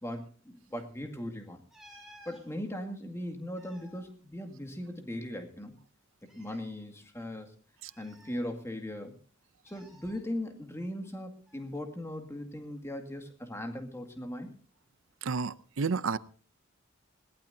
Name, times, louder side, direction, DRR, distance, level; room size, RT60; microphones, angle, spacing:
voice 1, 0.5-1.6 2.3-5.8 6.2-7.5 8.0-9.2 9.7-14.5, left 1 dB, 15° left, 5 dB, 2.1 m, -39 dB
sound 1, 1.7-2.4 3.3-5.0 5.3-5.4 6.2-6.7 7.9-8.9 9.7-10.2 11.5-11.7, right 1 dB, ahead, 5.8 m, -56 dB
voice 2, 15.2-16.2, right 5 dB, 75° right, 16 dB, 0.6 m, -31 dB
21.0 x 16.5 x 2.7 m, 0.39 s
head